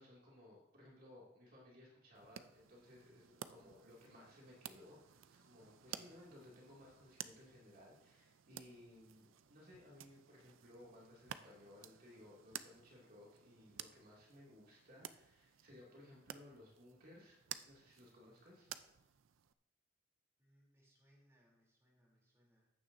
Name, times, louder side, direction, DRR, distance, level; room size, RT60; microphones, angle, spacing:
voice 1, 0.0-17.4 17.6-18.7, left 1 dB, 50° right, -4 dB, 2.4 m, -60 dB
sound 1, 2.1-19.5, right 9 dB, 85° right, 0.5 m, -54 dB
voice 2, 5.9-6.5 20.4-22.7, equal, 15° right, -4 dB, 3.2 m, -73 dB
14.5 x 9.8 x 2.7 m, 0.86 s
head